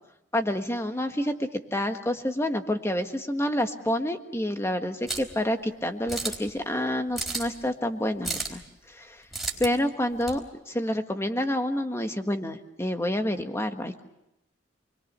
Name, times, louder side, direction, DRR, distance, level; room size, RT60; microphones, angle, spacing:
voice 1, 0.3-8.6 8.9-9.2 9.6-10.4 10.7-14.0, left 1 dB, 15° left, 6 dB, 1.6 m, -28 dB
sound 1, 5.1-5.3 6.1-6.5 7.1-7.6 8.2-8.6 9.3-9.7 10.2-10.4, right 2 dB, ahead, 4.2 m, -32 dB
28.5 x 22.5 x 6.8 m, 0.86 s
head